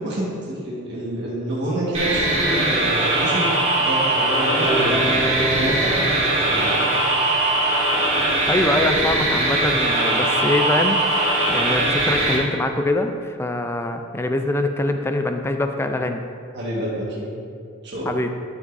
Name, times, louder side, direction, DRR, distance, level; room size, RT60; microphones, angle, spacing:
voice 1, 0.0-6.0 6.4-6.9 10.0-10.1 16.5-17.3 17.8-18.2, right 1 dB, 55° right, -6 dB, 1.5 m, -28 dB
sound 1, 1.9-12.4, right 1 dB, 30° right, 1.7 m, -20 dB
sound 2, 4.7-7.6, right 1 dB, 15° right, 1.0 m, -28 dB
voice 2, 8.5-16.2 18.1-18.3, left 2 dB, 10° left, 6 dB, 0.4 m, -24 dB
12.0 x 6.0 x 2.6 m, 2.2 s
head